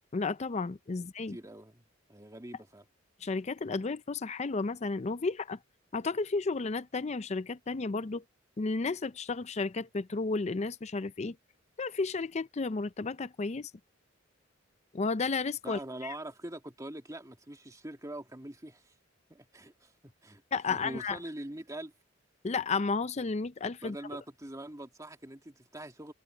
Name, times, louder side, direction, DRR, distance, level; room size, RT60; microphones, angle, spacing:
voice 1, 0.1-1.4 3.2-5.6 5.9-8.2 8.6-11.4 11.8-13.7 14.9-16.1 20.5-21.2 22.4-24.0, left 4 dB, 35° left, 0.5 m, -32 dB
voice 2, 1.0-1.8 2.1-2.8 15.6-18.9 19.3-20.4 20.7-21.9 23.8-26.1, right 1 dB, 15° right, 2.2 m, -44 dB
head